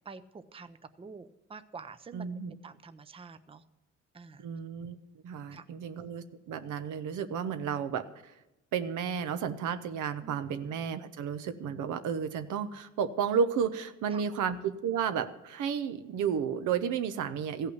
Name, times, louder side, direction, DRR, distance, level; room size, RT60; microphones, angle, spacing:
voice 1, 0.0-2.3 2.6-3.6 4.1-4.5 5.5-5.6 10.2-10.4 14.1-14.2, right 4 dB, 20° right, 12 dB, 0.6 m, -47 dB
voice 2, 2.1-2.5 4.4-5.0 5.2-8.0 8.7-17.7, right 7 dB, 80° right, 10 dB, 0.9 m, -32 dB
15.0 x 5.8 x 8.0 m, 0.96 s
cardioid pair, 90°, 30 cm